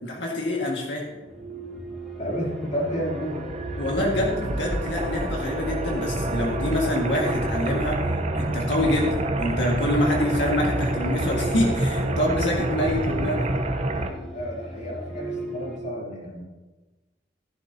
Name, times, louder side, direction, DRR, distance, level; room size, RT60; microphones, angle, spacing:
voice 1, 0.0-1.1 3.8-8.1 8.3-13.5, left 1 dB, 70° left, -2 dB, 1.7 m, -26 dB
sound 1, 1.1-15.8, right 1 dB, ahead, 2.1 m, -38 dB
voice 2, 2.2-3.4 14.3-16.4, equal, 40° left, -4 dB, 3.0 m, -31 dB
sound 2, 2.5-14.1, right 1 dB, 35° right, 0.8 m, -28 dB
15.5 x 10.5 x 2.8 m, 1.2 s
head